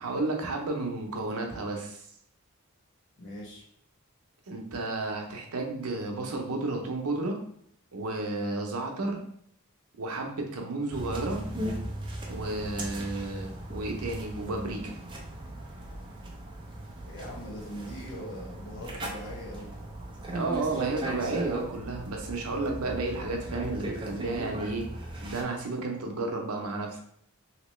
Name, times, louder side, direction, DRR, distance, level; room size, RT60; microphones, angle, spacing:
voice 1, 0.0-2.0 4.5-7.4 7.9-9.2 10.0-11.4 12.3-15.0 20.3-24.9 25.2-27.0, right 2 dB, 80° right, 2 dB, 0.7 m, -32 dB
voice 2, 3.2-3.7 17.1-19.8 20.7-20.8 21.3-21.4, equal, 55° left, -3 dB, 1.0 m, -41 dB
sound 1, 10.9-25.4, right 1 dB, 20° right, 0.5 m, -37 dB
2.9 x 2.9 x 3.1 m, 0.66 s
head